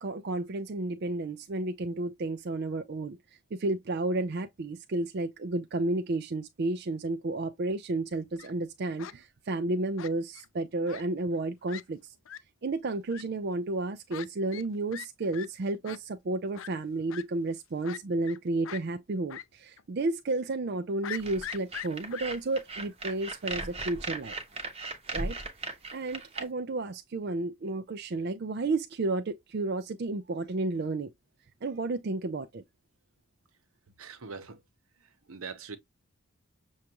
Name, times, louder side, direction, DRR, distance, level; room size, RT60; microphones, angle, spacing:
voice 1, 0.0-12.1 12.6-24.4 25.1-25.4 25.6-31.1 31.6-32.6, right 2 dB, 50° right, 0.4 m, -32 dB
Fowl, 8.1-8.5 9.0-9.1 10.0-10.5 10.9-11.0 11.3-11.4 11.7-11.8 12.2-12.4 13.1-13.2 14.1-14.3 14.5-14.7 14.9-15.1 15.3-15.5 15.8-16.0 16.5-16.7 17.1-17.2 17.8-18.4 18.6-18.8 19.3-19.4 19.8-19.9 21.0-22.2, left 10 dB, 65° left, 0.4 m, -41 dB
sound 1, 21.2-26.4, right 3 dB, 25° right, 0.9 m, -37 dB
voice 2, 34.0-34.6 35.3-35.8, right 5 dB, 75° right, 0.9 m, -42 dB
6.4 x 2.3 x 2.9 m
head